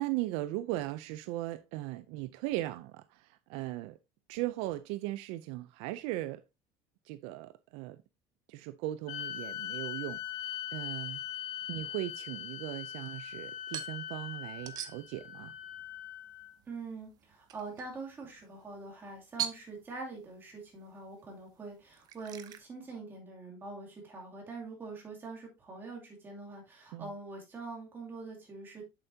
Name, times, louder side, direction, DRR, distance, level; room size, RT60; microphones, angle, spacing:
voice 1, 0.0-4.0 4.3-6.4 7.0-8.0 8.5-11.2 11.7-15.5 26.9-27.1, right 16 dB, 65° right, 0.4 m, -38 dB
sound 1, 9.1-16.6, left 11 dB, 60° left, 0.9 m, -41 dB
sound 2, 10.0-22.6, right 10 dB, 35° right, 0.7 m, -47 dB
voice 2, 16.7-28.8, right 3 dB, 20° right, 2.6 m, -44 dB
7.9 x 7.4 x 2.7 m
cardioid pair, 175°, 11 cm